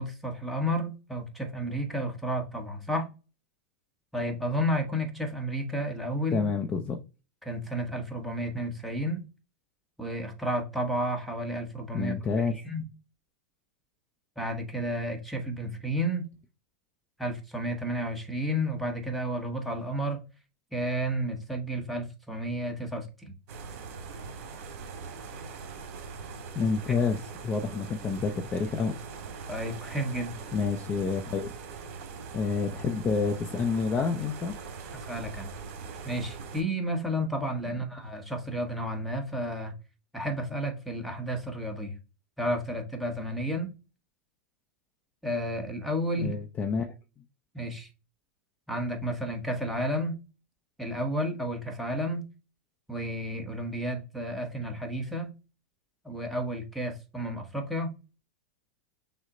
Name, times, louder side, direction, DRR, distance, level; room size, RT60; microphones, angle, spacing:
voice 1, 0.0-3.1 4.1-6.5 7.4-9.2 10.0-12.8 14.4-16.3 17.2-20.2 20.7-23.3 26.9-27.0 29.5-30.4 34.9-35.5 36.0-39.8 40.1-42.0 42.4-43.7 45.2-46.3 47.5-47.9 48.7-50.2 50.8-52.3 52.9-55.3 56.0-57.9, equal, ahead, 1.0 m, -32 dB
voice 2, 6.3-7.0 11.9-12.6 26.5-28.9 30.5-31.5 32.3-34.5 46.2-46.9, left 5 dB, 20° left, 0.6 m, -28 dB
sound 1, 23.5-36.6, right 5 dB, 50° right, 1.5 m, -42 dB
6.3 x 2.1 x 3.7 m
supercardioid pair, 140°, 7 cm